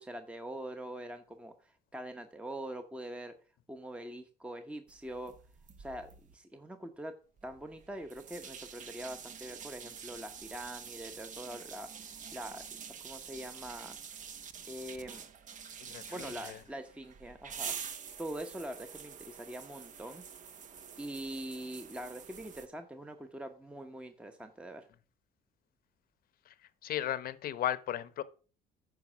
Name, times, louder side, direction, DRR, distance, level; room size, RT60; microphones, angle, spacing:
voice 1, 0.0-3.3 3.7-5.3 5.8-7.1 7.4-12.6 13.0-14.0 14.7-15.2 16.1-20.2 21.0-24.9, right 1 dB, 5° right, 0.9 m, -43 dB
sound 1, 4.9-6.3 7.4-22.7, right 7 dB, 50° right, 1.1 m, -47 dB
voice 2, 15.8-16.6 26.5-26.6 26.8-28.2, left 11 dB, 60° left, 0.9 m, -36 dB
9.4 x 5.5 x 6.1 m
cardioid pair, 110°, 17 cm